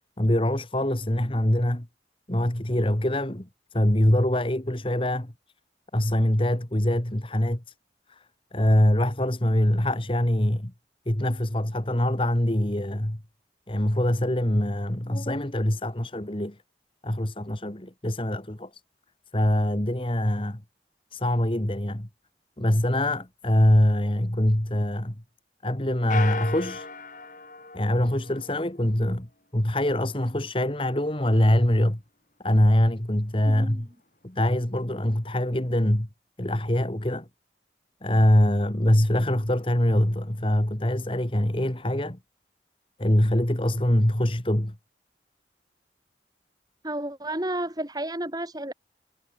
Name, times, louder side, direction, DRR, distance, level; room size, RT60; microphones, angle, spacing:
voice 1, 0.2-1.9 2.3-5.3 5.9-7.6 8.1-8.3 8.5-10.7 11.1-13.2 13.7-16.6 17.0-18.8 19.3-20.6 21.1-22.1 22.6-25.2 25.6-26.9 27.7-32.0 32.4-33.9 34.2-36.1 36.4-37.3 38.0-42.2 43.0-44.7, left 1 dB, 30° left, 1.9 m, -24 dB
sound 1, 26.1-28.8, left 3 dB, 45° left, 6.1 m, -37 dB
voice 2, 33.4-33.8 46.8-48.7, right 1 dB, 20° right, 5.3 m, -31 dB
head